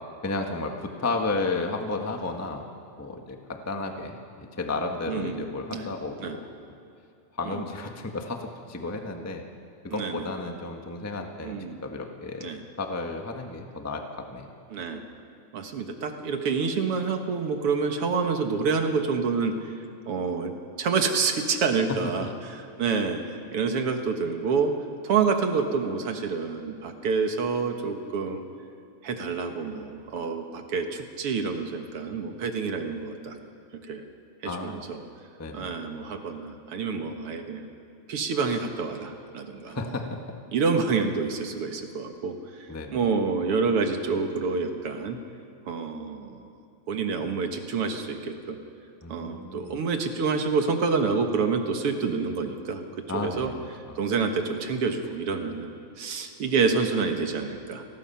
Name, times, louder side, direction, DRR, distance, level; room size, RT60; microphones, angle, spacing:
voice 1, 0.2-2.7 3.0-6.5 7.4-9.4 9.8-11.6 11.8-12.5 12.8-14.5 21.9-22.3 34.4-34.8 35.4-35.7 39.7-40.2 42.7-43.1 49.0-49.8 53.1-54.0, left 3 dB, 15° left, 3 dB, 0.5 m, -33 dB
voice 2, 5.1-5.4 5.7-5.9 6.2-6.4 7.4-7.6 9.9-10.3 11.4-11.8 12.4-12.6 14.7-15.0 15.5-19.5 20.1-23.2 23.5-24.7 25.0-28.4 29.0-33.4 33.9-34.0 34.4-35.0 35.5-37.7 38.1-39.9 40.5-42.4 42.9-45.2 45.7-46.5 46.9-48.6 49.1-52.8 53.1-53.5 54.0-57.9, right 5 dB, 55° right, 5 dB, 2.1 m, -28 dB
29.5 x 19.5 x 5.8 m, 2.6 s
omnidirectional pair, 3.4 m